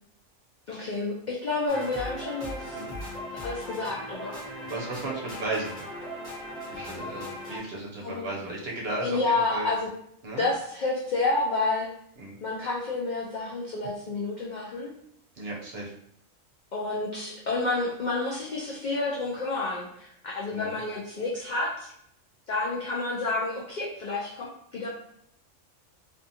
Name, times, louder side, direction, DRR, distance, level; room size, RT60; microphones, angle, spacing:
voice 1, 0.7-2.9 3.4-4.4 8.0-8.3 9.0-9.9 10.4-11.9 12.4-14.9 16.7-21.9 22.5-24.9, left 3 dB, 70° left, -3 dB, 0.4 m, -29 dB
sound 1, 1.7-7.6, equal, 5° left, 1.0 m, -38 dB
voice 2, 4.7-5.8 6.7-9.7 10.2-10.4 12.2-12.4 13.8-13.9 15.4-15.9 20.5-20.7, right 2 dB, 60° right, -3 dB, 0.8 m, -35 dB
2.6 x 2.4 x 2.7 m, 0.71 s
omnidirectional pair, 1.3 m